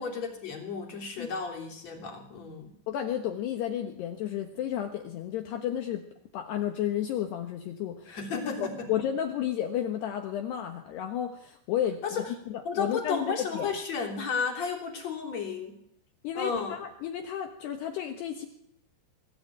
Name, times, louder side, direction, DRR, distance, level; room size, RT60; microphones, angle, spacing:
voice 1, 0.0-2.7 8.1-8.9 12.0-12.3 12.6-15.8 16.4-16.8, left 5 dB, 40° left, 2 dB, 4.0 m, -33 dB
voice 2, 2.9-6.0 6.3-13.7 16.2-18.5, left 10 dB, 70° left, 4 dB, 3.3 m, -32 dB
24.0 x 16.0 x 9.0 m, 0.74 s
omnidirectional pair, 5.4 m